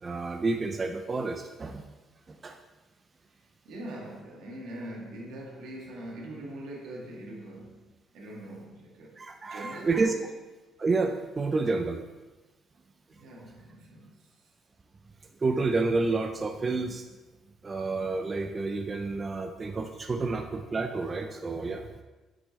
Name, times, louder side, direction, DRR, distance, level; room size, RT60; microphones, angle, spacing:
voice 1, 0.0-1.8 2.3-2.6 9.2-10.1 10.8-12.0 15.4-17.0 17.6-21.9, right 3 dB, 20° right, 4 dB, 0.4 m, -29 dB
voice 2, 3.7-10.3 13.1-14.2 20.2-20.3, right 1 dB, 80° right, -2 dB, 1.9 m, -43 dB
7.9 x 6.1 x 3.2 m, 1.2 s
cardioid pair, 160°, 0 cm